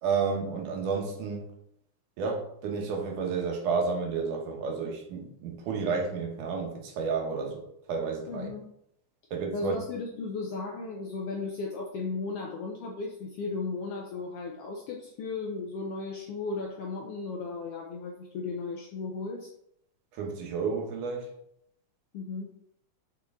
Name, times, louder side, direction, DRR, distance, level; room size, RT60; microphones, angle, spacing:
voice 1, 0.0-1.5 2.2-7.6 7.9-8.5 9.3-9.8 20.2-21.3, right 5 dB, 85° right, 2 dB, 2.7 m, -31 dB
voice 2, 8.3-8.6 9.5-19.5 22.1-22.5, left 4 dB, 75° left, 0 dB, 1.4 m, -35 dB
6.7 x 4.5 x 3.5 m, 0.74 s
omnidirectional pair, 3.5 m